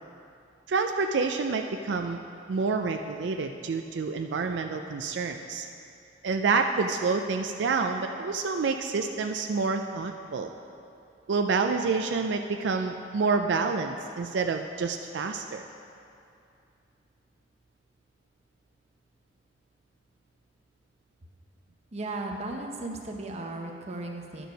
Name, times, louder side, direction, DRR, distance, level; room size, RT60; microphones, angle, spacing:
voice 1, 0.7-2.2 2.5-5.7 6.2-10.5 11.3-15.6, right 4 dB, 80° right, 5 dB, 0.4 m, -28 dB
voice 2, 21.9-24.5, right 2 dB, 40° right, 2 dB, 0.8 m, -36 dB
11.0 x 4.6 x 5.2 m, 2.6 s
head